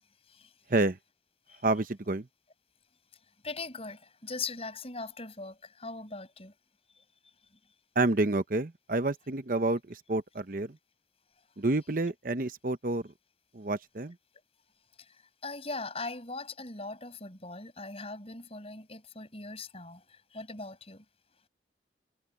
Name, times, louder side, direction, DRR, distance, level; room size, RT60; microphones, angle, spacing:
voice 1, 1.6-2.3 8.0-10.8 11.6-13.1 13.5-14.1, right 2 dB, 50° right, 0.8 m, -29 dB
voice 2, 3.4-6.5 6.9-7.3 15.0-21.0, left 3 dB, 35° left, 6.1 m, -41 dB
head